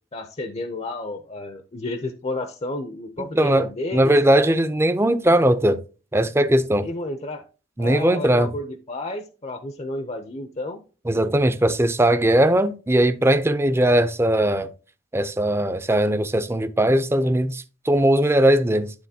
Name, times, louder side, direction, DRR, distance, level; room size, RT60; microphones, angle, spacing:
voice 1, 0.1-4.2 6.8-7.4 7.8-10.8, left 2 dB, 35° left, 0.6 m, -31 dB
voice 2, 3.2-5.8 6.1-6.8 7.8-8.5 11.1-14.7 15.1-18.9, right 1 dB, 15° right, 0.5 m, -19 dB
11.5 x 3.9 x 2.7 m
head